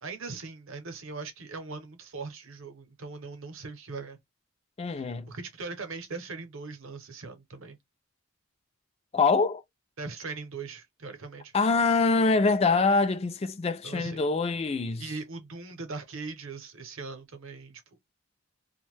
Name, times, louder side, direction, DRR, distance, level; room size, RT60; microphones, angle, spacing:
voice 1, 0.0-4.2 4.9-7.8 10.0-11.5 13.8-14.3 15.0-17.8, right 4 dB, 65° right, 0.8 m, -40 dB
voice 2, 4.8-5.3 9.1-9.6 11.5-15.1, left 4 dB, 30° left, 0.3 m, -24 dB
2.5 x 2.1 x 3.2 m
head